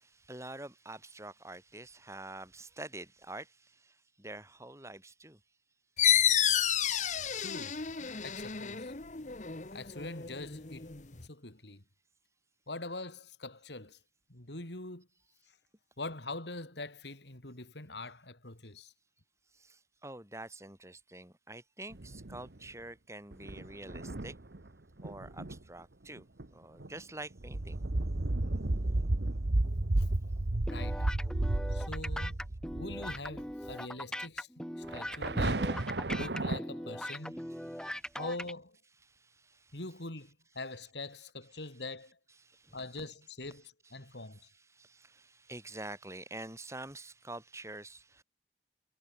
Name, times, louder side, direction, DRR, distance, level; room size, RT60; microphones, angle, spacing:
voice 1, 0.0-5.4 19.5-24.3 25.0-26.2 26.5-27.8 37.5-38.2 39.1-39.8 42.4-42.8 44.0-48.2, right 2 dB, 15° right, 7.5 m, -47 dB
sound 1, 6.0-11.3, left 9 dB, 40° left, 1.2 m, -30 dB
voice 2, 7.4-8.9 9.7-10.9 11.2-11.8 12.7-14.0 14.3-15.1 16.0-18.9 30.0-30.1 30.7-31.1 31.7-32.4 32.7-34.5 34.9-35.6 36.1-37.4 38.2-38.8 39.7-42.2 42.7-44.4, left 2 dB, 75° left, 3.9 m, -43 dB
sound 2, 21.9-22.6 23.3-24.6 25.0-25.6 26.2-26.5 26.8-27.0 27.4-33.4 33.7-33.8 34.9-36.6, right 2 dB, 70° right, 1.2 m, -32 dB
sound 3, 30.7-38.5, equal, 5° left, 1.8 m, -41 dB
head